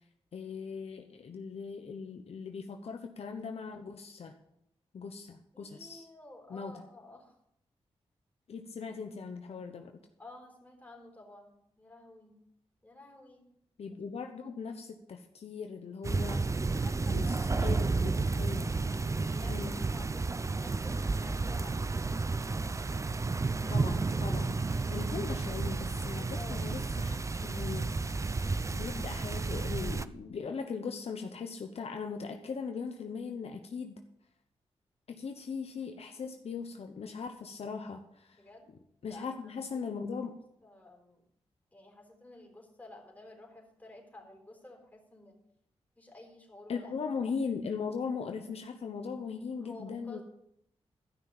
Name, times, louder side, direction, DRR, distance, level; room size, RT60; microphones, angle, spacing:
voice 1, 0.3-4.4 4.9-6.1 6.5-6.8 8.5-9.9 13.8-16.7 17.1-18.8 19.5-19.8 23.7-28.0 28.7-34.0 35.1-38.4 39.0-40.4 46.7-50.2, left 5 dB, 70° left, 5 dB, 1.0 m, -39 dB
voice 2, 5.5-7.3 10.2-12.3 12.8-13.5 16.6-17.7 19.0-21.9 26.3-26.7 38.3-38.7 39.0-39.5 39.9-40.1 40.6-41.2 41.7-45.4 46.0-46.9 49.6-50.2, left 2 dB, 15° left, 1 dB, 4.0 m, -52 dB
sound 1, 16.0-30.0, right 3 dB, 30° right, 0.5 m, -32 dB
13.0 x 5.9 x 7.1 m, 0.75 s
cardioid pair, 75°, 11 cm